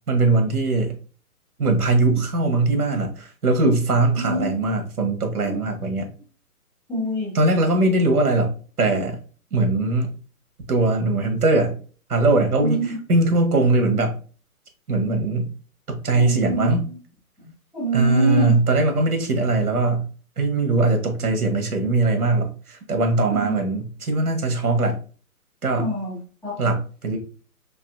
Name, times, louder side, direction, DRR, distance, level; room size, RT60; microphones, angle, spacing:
voice 1, 0.1-0.9 1.6-6.1 7.3-8.5 8.8-9.2 9.5-10.1 10.7-11.8 12.1-12.8 13.1-14.1 14.9-15.5 15.9-16.9 17.9-20.1 20.4-25.0 25.6-25.9 26.6-27.2, right 2 dB, 75° right, 1.4 m, -20 dB
voice 2, 4.1-4.5 5.5-5.6 6.9-7.3 12.6-13.0 16.2-17.0 17.7-18.6 23.3-23.6 25.7-26.5, right 2 dB, ahead, 0.4 m, -25 dB
4.0 x 3.2 x 2.4 m
hypercardioid pair, 145°, 45 cm